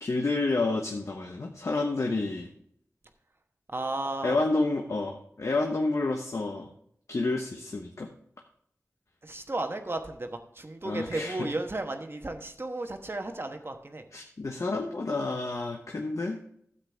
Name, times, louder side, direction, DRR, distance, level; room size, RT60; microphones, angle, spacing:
voice 1, 0.0-2.5 4.2-6.7 7.1-8.1 10.8-11.5 14.1-16.4, left 3 dB, 70° left, 2 dB, 1.1 m, -29 dB
voice 2, 3.7-4.4 9.2-14.0, right 2 dB, 45° right, 5 dB, 1.2 m, -34 dB
12.5 x 8.1 x 3.5 m, 0.66 s
wide cardioid pair, 60°, 5 cm